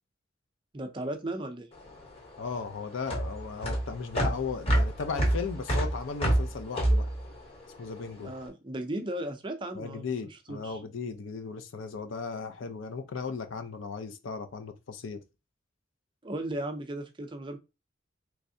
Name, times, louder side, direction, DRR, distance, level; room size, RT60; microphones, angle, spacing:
voice 1, 0.7-1.7 8.2-10.1 10.5-10.8 16.2-17.6, right 1 dB, 25° right, 0.5 m, -36 dB
sound 1, 1.7-8.3, right 1 dB, 30° left, 1.0 m, -28 dB
voice 2, 2.4-7.1 7.8-8.3 9.7-15.2, left 5 dB, 80° left, 0.5 m, -36 dB
3.4 x 3.2 x 2.6 m
head